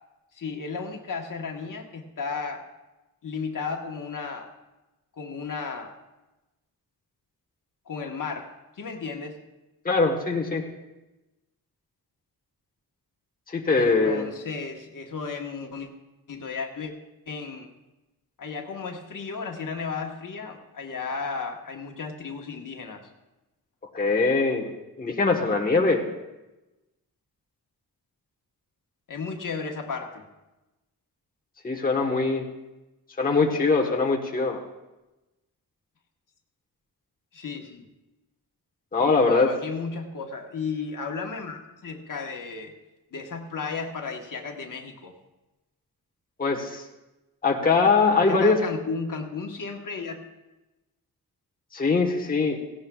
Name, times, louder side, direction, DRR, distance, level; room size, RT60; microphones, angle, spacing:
voice 1, 0.3-2.7 3.2-4.5 5.1-6.0 7.9-9.4 13.8-15.9 16.3-16.9 17.3-17.7 18.4-23.1 29.1-30.2 37.3-37.9 39.0-42.7 43.1-45.1 48.3-50.3, left 5 dB, 55° left, 3 dB, 1.3 m, -34 dB
voice 2, 9.8-10.6 13.5-14.3 23.9-24.7 25.0-26.0 31.6-32.5 33.2-34.6 38.9-39.5 46.4-46.8 47.4-48.6 51.7-52.6, left 4 dB, 25° left, 0 dB, 1.1 m, -22 dB
17.0 x 16.5 x 2.3 m, 1.0 s
wide cardioid pair, 155°, 37 cm